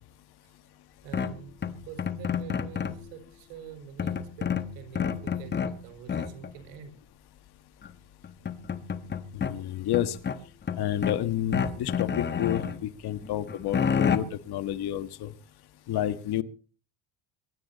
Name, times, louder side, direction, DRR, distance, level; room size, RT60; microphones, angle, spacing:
voice 1, 1.0-7.0, right 7 dB, 85° right, 7 dB, 4.7 m, -46 dB
sound 1, 1.1-3.1 4.0-5.8 6.1-6.5 7.8-7.9 8.2-9.5 9.9-11.2 11.5-12.8 13.2-14.2, left 7 dB, 25° left, 1.3 m, -29 dB
voice 2, 9.3-10.2 10.8-15.3 15.9-16.4, left 12 dB, 55° left, 12 dB, 1.5 m, -30 dB
23.5 x 11.5 x 4.1 m, 0.38 s
cardioid pair, 120°, 46 cm